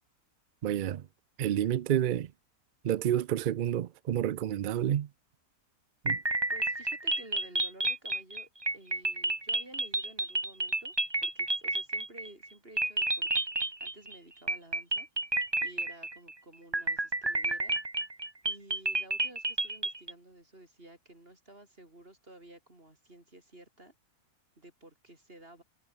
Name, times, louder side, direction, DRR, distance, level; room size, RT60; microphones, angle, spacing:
voice 1, 0.6-1.1 1.4-2.3 2.8-5.1 6.0-6.2, right 10 dB, 80° right, 0.4 m, -29 dB
sound 1, 6.1-12.5 12.8-14.2 14.5-16.3 16.7-20.1, right 2 dB, 15° right, 1.6 m, -31 dB
voice 2, 6.5-10.9 11.2-13.4 13.8-15.1 15.6-17.8 18.4-23.9 24.6-25.6, right 1 dB, 40° right, 6.5 m, -53 dB
omnidirectional pair, 1.6 m